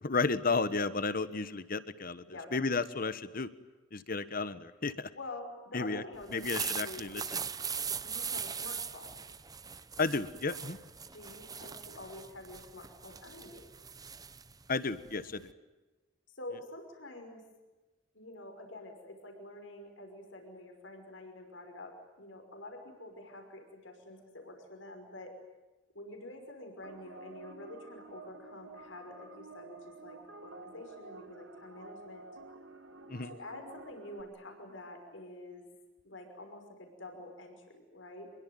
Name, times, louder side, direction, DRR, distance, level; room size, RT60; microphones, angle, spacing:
voice 1, 0.0-3.5 3.9-5.1 5.7-6.0 6.3-7.4 10.0-10.8 14.7-15.5 33.1-33.3, left 4 dB, 50° left, 14 dB, 1.4 m, -33 dB
voice 2, 5.1-7.0 8.0-9.2 11.1-13.7 16.3-17.4 18.1-25.4 25.9-32.2 33.2-35.6 36.0-38.3, left 2 dB, 75° left, 4 dB, 5.6 m, -47 dB
sound 1, 6.2-15.5, right 6 dB, 20° right, 0.9 m, -40 dB
sound 2, 26.8-34.2, right 3 dB, 80° right, 2.6 m, -51 dB
26.0 x 22.5 x 9.5 m, 1.2 s
head